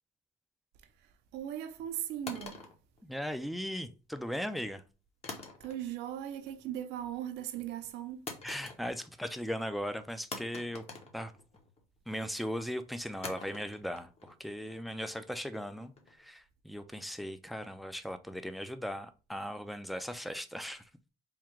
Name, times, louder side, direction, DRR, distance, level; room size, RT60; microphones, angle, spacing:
voice 1, 1.0-2.7 5.6-8.4, right 11 dB, 85° right, 0.5 m, -39 dB
sound 1, 2.3-3.7 5.2-6.1 6.4-6.8 8.3-9.2 9.5-9.6 10.3-11.8 13.2-16.2, left 3 dB, 40° left, 0.9 m, -46 dB
voice 2, 3.0-4.8 8.4-10.8 11.1-11.3 12.1-20.9, equal, ahead, 0.4 m, -38 dB
3.6 x 2.2 x 4.5 m
cardioid pair, 110°, 17 cm